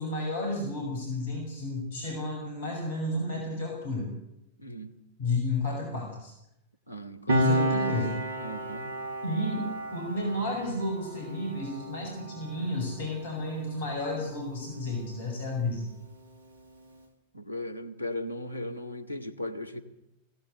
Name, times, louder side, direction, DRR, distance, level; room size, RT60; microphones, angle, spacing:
voice 1, 0.0-4.1 5.2-6.3 7.3-8.2 9.2-15.9, left 2 dB, 60° left, 2 dB, 6.1 m, -32 dB
voice 2, 4.6-4.9 6.9-7.6 8.4-8.9 17.3-19.8, left 1 dB, 90° right, 9 dB, 2.0 m, -37 dB
Piano, 7.3-14.3 14.6-14.8, right 1 dB, 65° right, 2.8 m, -32 dB
21.5 x 17.5 x 8.2 m, 0.84 s
figure-of-eight pair, 90°, 0 cm